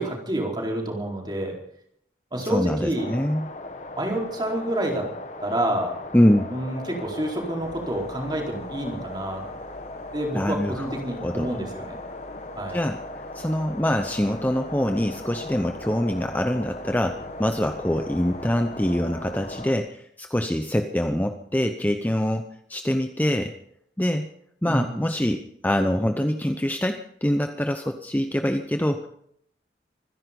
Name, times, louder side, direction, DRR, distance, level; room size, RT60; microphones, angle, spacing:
voice 1, 0.0-1.5 2.3-3.2 4.0-5.0 5.4-6.0 6.5-9.4 10.1-12.0 12.6-12.8 24.6-25.0, right 1 dB, 25° right, 0 dB, 4.4 m, -28 dB
voice 2, 2.5-3.5 6.1-6.5 10.3-10.9 11.2-11.6 12.7-13.0 13.3-23.5 24.0-24.3 24.6-29.1, equal, 10° left, 6 dB, 0.8 m, -24 dB
sound 1, 2.9-19.7, left 2 dB, 40° left, 1.5 m, -38 dB
sound 2, 7.6-19.5, right 1 dB, 55° right, 7.0 m, -50 dB
25.0 x 10.5 x 5.3 m, 0.69 s
head